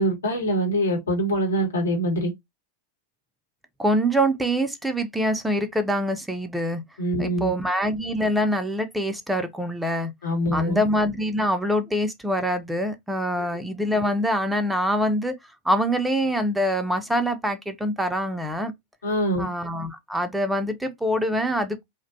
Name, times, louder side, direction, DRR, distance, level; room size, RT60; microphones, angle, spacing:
voice 1, 0.0-2.3 7.0-7.5 10.2-10.8 13.4-13.5 19.0-19.5, right 1 dB, 70° left, 1.0 m, -24 dB
voice 2, 3.8-6.8 7.2-10.1 10.5-15.3 15.6-18.7 19.4-21.8, equal, 5° right, 0.4 m, -24 dB
2.5 x 2.1 x 2.5 m
figure-of-eight pair, 90°, 0 cm